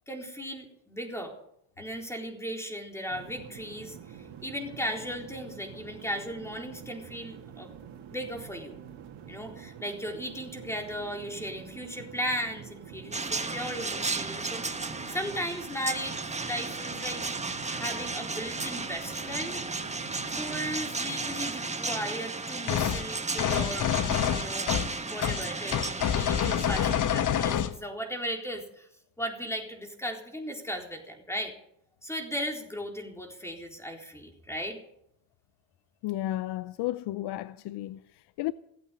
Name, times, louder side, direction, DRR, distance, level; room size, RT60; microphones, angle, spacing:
voice 1, 0.1-1.3 1.8-7.7 8.1-8.8 9.3-16.2 16.4-17.2 17.7-19.6 20.4-23.9 24.3-24.7 25.0-28.9 29.2-31.5 32.0-34.8, equal, 5° left, 3.9 m, -36 dB
sound 1, 3.1-21.6, right 8 dB, 60° right, 2.5 m, -47 dB
sound 2, 13.1-27.1, right 3 dB, 15° right, 1.5 m, -34 dB
sound 3, 22.7-23.0 23.4-24.9 25.2-25.4 25.7-27.7, left 9 dB, 40° left, 1.0 m, -27 dB
voice 2, 36.0-38.5, left 15 dB, 60° left, 0.7 m, -33 dB
17.0 x 8.5 x 9.1 m
supercardioid pair, 90°, 46 cm